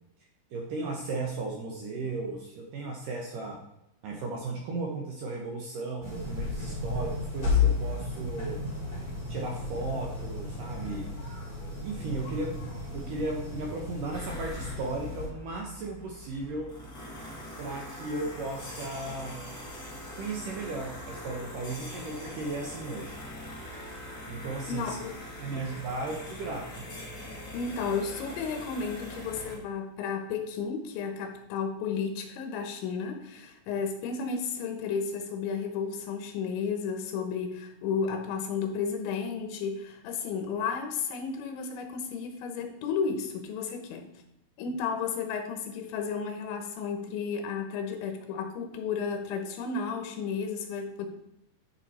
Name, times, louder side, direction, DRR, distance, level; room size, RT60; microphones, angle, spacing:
voice 1, 0.5-3.6 4.0-8.6 9.3-11.1 11.8-12.6 12.9-16.7 17.6-19.4 20.1-23.2 24.3-25.0 25.4-26.9, right 3 dB, 70° right, 0 dB, 2.1 m, -35 dB
sound 1, 6.0-15.3, left 4 dB, 10° left, 2.7 m, -33 dB
sound 2, 14.1-29.6, left 1 dB, 35° left, 1.6 m, -43 dB
voice 2, 24.7-25.1 25.5-25.7 27.5-44.1 44.6-51.1, left 5 dB, 90° left, 5 dB, 3.6 m, -33 dB
11.5 x 5.6 x 4.3 m, 0.84 s
omnidirectional pair, 5.2 m